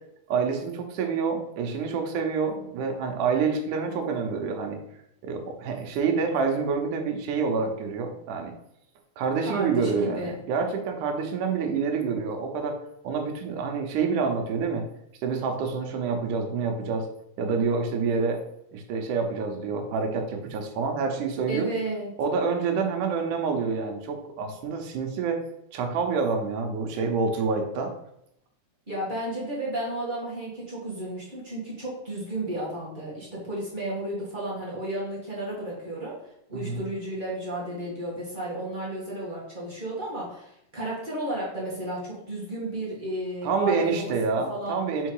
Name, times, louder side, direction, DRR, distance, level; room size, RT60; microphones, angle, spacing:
voice 1, 0.3-4.8 5.2-8.5 9.2-12.8 13.0-14.8 15.2-17.1 17.4-18.4 18.7-21.7 22.2-25.4 25.7-27.9 36.5-36.8 43.4-45.1, right 5 dB, 80° right, 3 dB, 2.4 m, -27 dB
voice 2, 9.4-10.4 21.5-22.1 28.9-36.2 36.5-44.8, right 1 dB, 25° right, -6 dB, 1.1 m, -33 dB
4.8 x 4.5 x 4.8 m, 0.79 s
omnidirectional pair, 3.5 m